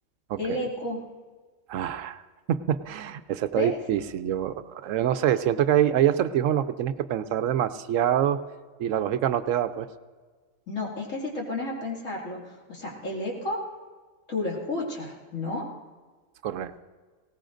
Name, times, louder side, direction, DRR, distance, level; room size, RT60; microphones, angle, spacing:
voice 1, 0.4-1.0 3.5-3.7 10.7-13.6 14.3-15.7, left 2 dB, 70° left, -4 dB, 2.8 m, -31 dB
voice 2, 1.7-2.2 2.5-8.4 8.8-9.9 16.4-16.8, right 10 dB, 75° right, 11 dB, 0.9 m, -25 dB
19.5 x 17.5 x 2.6 m, 1.4 s
omnidirectional pair, 1.4 m